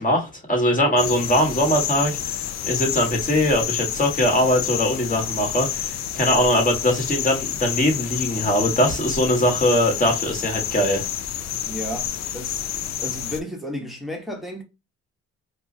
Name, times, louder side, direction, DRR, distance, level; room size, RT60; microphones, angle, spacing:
voice 1, 0.0-2.3 2.6-11.0, left 1 dB, 25° left, 1.5 m, -21 dB
sound 1, 1.0-13.4, left 10 dB, 65° left, 0.5 m, -29 dB
voice 2, 11.6-12.7 13.0-14.6, equal, ahead, 1.0 m, -33 dB
4.5 x 2.0 x 2.7 m
cardioid pair, 90°, 30 cm